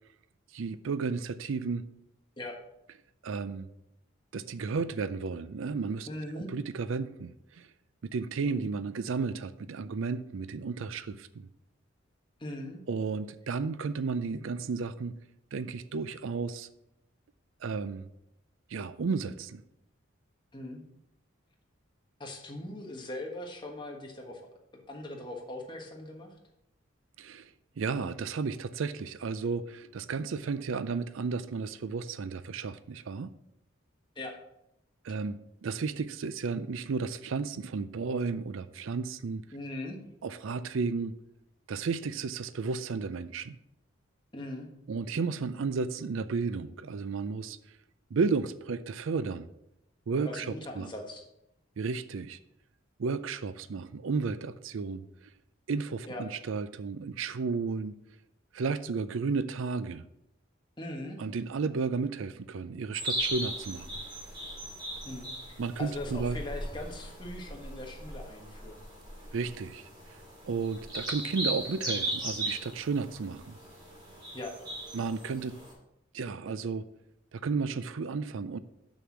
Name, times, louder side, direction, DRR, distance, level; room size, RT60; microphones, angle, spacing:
voice 1, 0.5-1.9 3.2-3.7 4.3-6.1 6.4-7.7 8.0-11.5 12.9-15.2 15.5-16.7 17.6-18.1 18.7-19.6 27.2-27.5 27.8-33.3 35.0-39.4 40.2-41.2 41.7-43.6 44.9-47.6 48.1-49.5 50.1-50.9 51.8-52.4 53.0-55.0 55.7-57.9 58.5-60.1 61.2-63.9 65.6-66.4 69.3-70.2 70.5-73.5 74.9-75.6 76.1-76.9 77.3-78.6, right 4 dB, 70° right, 14 dB, 0.4 m, -33 dB
voice 2, 6.1-6.5 8.4-8.7 12.4-12.8 20.5-20.8 22.2-26.3 34.1-34.3 39.5-40.0 44.3-44.7 50.2-51.3 56.1-56.2 60.8-61.2 65.0-65.3 65.8-68.8 74.3-74.5, left 1 dB, 20° left, 1 dB, 1.3 m, -40 dB
sound 1, 62.9-75.7, right 1 dB, 20° right, 2.7 m, -38 dB
6.6 x 6.3 x 6.1 m, 0.83 s
head